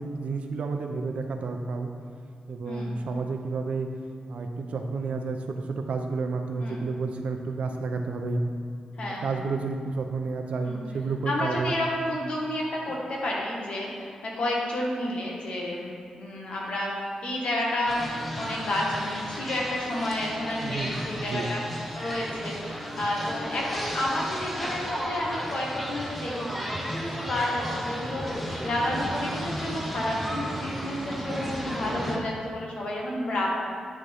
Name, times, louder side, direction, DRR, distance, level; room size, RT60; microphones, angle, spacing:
voice 1, 0.0-1.9 2.5-3.9 4.3-8.4 9.0-11.8 12.9-13.0 20.6-21.5, right 4 dB, 70° right, 4 dB, 0.7 m, -31 dB
voice 2, 9.0-9.4 10.7-10.8 11.3-15.9 16.2-18.0 18.3-21.6 21.9-33.5, left 1 dB, 60° left, -3 dB, 1.7 m, -30 dB
sound 1, 17.9-32.2, equal, ahead, 0.9 m, -34 dB
9.7 x 6.3 x 3.5 m, 2.4 s
wide cardioid pair, 145°, 2 cm